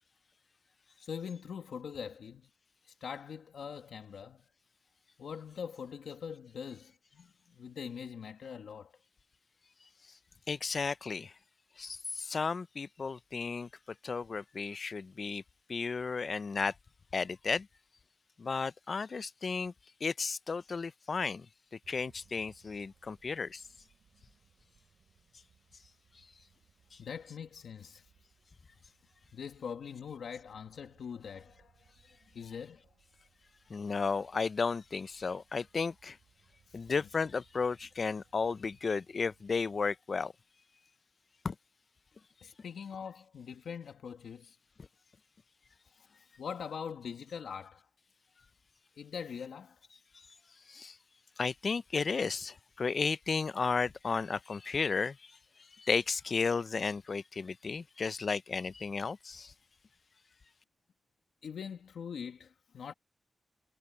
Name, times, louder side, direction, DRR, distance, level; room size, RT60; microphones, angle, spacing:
voice 1, 1.0-2.5 2.8-4.4 5.2-9.0 27.0-28.1 29.3-31.9 32.3-32.9 36.7-36.9 42.4-44.6 45.9-47.9 49.0-49.8 61.4-62.9, left 7 dB, 85° left, 1.7 m, -43 dB
voice 2, 10.5-11.3 11.8-13.7 14.0-15.4 15.7-16.7 17.1-17.7 18.4-19.7 20.0-21.5 21.9-23.6 26.9-27.0 33.7-36.2 36.7-40.3 41.4-41.6 50.1-50.3 50.7-51.0 51.4-59.5, left 4 dB, 55° left, 0.5 m, -33 dB
sound 1, 21.8-39.8, right 7 dB, 85° right, 7.3 m, -68 dB
cardioid pair, 75°, 0 cm